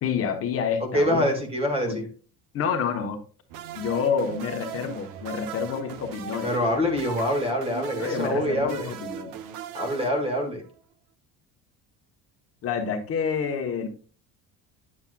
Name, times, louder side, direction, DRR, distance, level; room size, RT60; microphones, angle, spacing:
voice 1, 0.0-1.3 1.8-2.0 2.5-3.2 3.7-6.5 8.0-9.3 12.6-13.9, left 6 dB, 40° left, 4 dB, 1.0 m, -28 dB
voice 2, 0.8-2.1 6.4-8.9 9.7-10.6, equal, 15° right, 4 dB, 1.7 m, -25 dB
sound 1, 3.5-10.8, right 9 dB, 65° right, 0.8 m, -39 dB
9.7 x 7.1 x 2.2 m, 0.38 s
cardioid pair, 160°, 35 cm